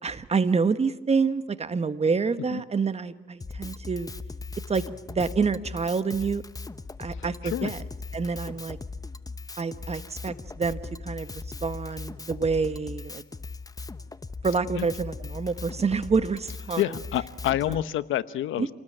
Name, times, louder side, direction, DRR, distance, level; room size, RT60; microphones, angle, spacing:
voice 1, 0.0-4.1 4.7-4.8 5.1-6.4 7.0-7.8 8.1-8.8 9.6-13.2 14.4-16.9 17.7-17.8 18.6-18.7, right 5 dB, 30° right, 12 dB, 1.4 m, -27 dB
Drum kit, 3.4-17.8, left 3 dB, 20° left, 1.0 m, -39 dB
voice 2, 7.1-7.7 14.7-14.9 16.8-18.7, left 12 dB, 80° left, 14 dB, 1.1 m, -28 dB
28.0 x 19.5 x 8.8 m, 1.0 s
cardioid pair, 90°, 20 cm